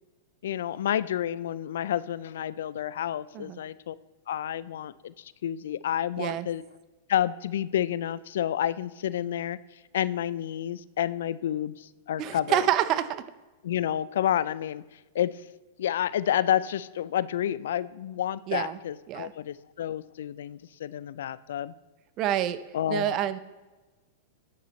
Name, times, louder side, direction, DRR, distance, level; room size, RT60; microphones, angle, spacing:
voice 1, 0.4-4.0 4.3-5.1 5.4-6.6 7.1-9.6 9.9-12.6 13.6-14.8 15.1-15.4 15.8-21.7 22.7-23.2, left 10 dB, 75° left, 18 dB, 0.3 m, -29 dB
voice 2, 12.2-13.2 18.5-18.8 19.1-19.3 22.2-22.6 22.9-23.4, right 11 dB, 40° right, 14 dB, 0.5 m, -27 dB
9.5 x 6.7 x 3.1 m, 1.2 s
hypercardioid pair, 130°, 0 cm